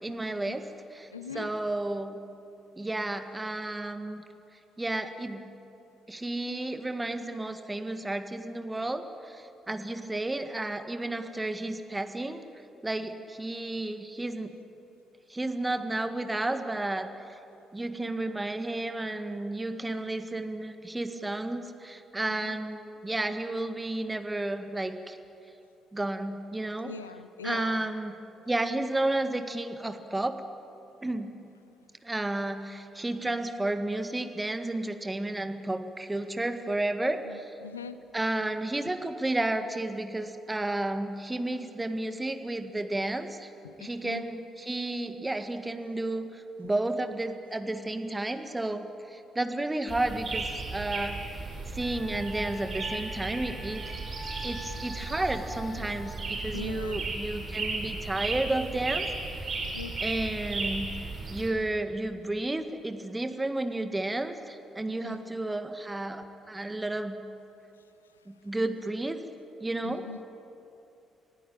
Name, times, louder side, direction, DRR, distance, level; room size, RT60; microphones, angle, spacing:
voice 1, 0.0-2.2 2.8-4.2 4.8-5.5 6.1-12.4 12.8-14.6 15.3-17.1 17.7-25.2 25.9-26.9 27.4-28.2 28.5-30.4 31.0-31.3 32.0-37.5 38.1-43.5 43.8-51.2 51.7-54.0 54.4-59.7 60.0-60.9 61.3-67.2 68.3-69.2 69.6-70.1, right 2 dB, 15° right, 8 dB, 1.8 m, -32 dB
voice 2, 1.1-1.5 22.4-22.6 26.8-27.8 37.3-38.0 43.6-44.2 56.5-57.0 59.6-59.9 65.0-65.2 69.8-70.2, left 6 dB, 85° left, 12 dB, 0.7 m, -41 dB
sound 1, 49.9-61.5, right 3 dB, 45° right, 5.4 m, -35 dB
Wind instrument woodwind instrument, 51.8-56.1, left 1 dB, 15° left, 6.9 m, -44 dB
27.0 x 18.0 x 9.1 m, 2.7 s
figure-of-eight pair, 40°, 0 cm